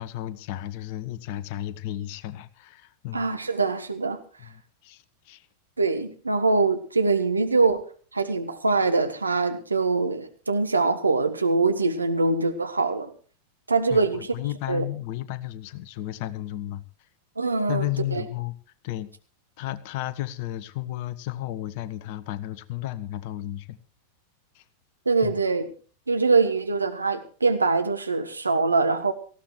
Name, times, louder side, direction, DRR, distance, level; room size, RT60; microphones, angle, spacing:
voice 1, 0.0-3.3 4.4-5.5 13.9-16.8 17.7-18.5 18.8-19.1 19.6-23.8 24.5-24.6 25.2-25.4, left 14 dB, 45° left, 15 dB, 1.0 m, -33 dB
voice 2, 3.1-4.2 5.8-7.8 8.1-13.1 13.7-14.3 14.7-14.8 17.4-18.2 25.0-25.6 26.1-29.1, right 3 dB, 80° right, 8 dB, 1.4 m, -23 dB
18.5 x 15.0 x 3.2 m, 0.40 s
figure-of-eight pair, 90°, 0 cm